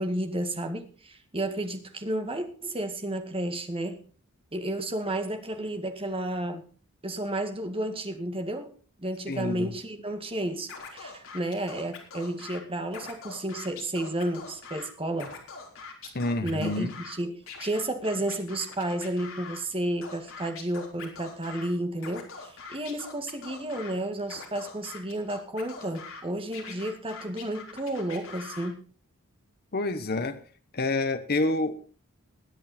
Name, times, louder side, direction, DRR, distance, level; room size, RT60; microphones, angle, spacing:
voice 1, 0.0-4.0 4.5-6.7 7.0-8.7 9.0-15.3 16.4-28.8, right 1 dB, 25° right, 7 dB, 2.0 m, -32 dB
voice 2, 9.3-9.7 16.1-16.9 29.7-30.4 30.7-31.7, left 2 dB, 45° left, 9 dB, 1.2 m, -28 dB
Scratching (performance technique), 10.7-12.6 12.9-14.9 15.1-17.1 17.5-19.6 20.0-21.7 22.0-23.9 24.3-26.2 26.5-28.7, left 5 dB, 65° left, 3.8 m, -43 dB
21.5 x 8.6 x 4.3 m, 0.39 s
head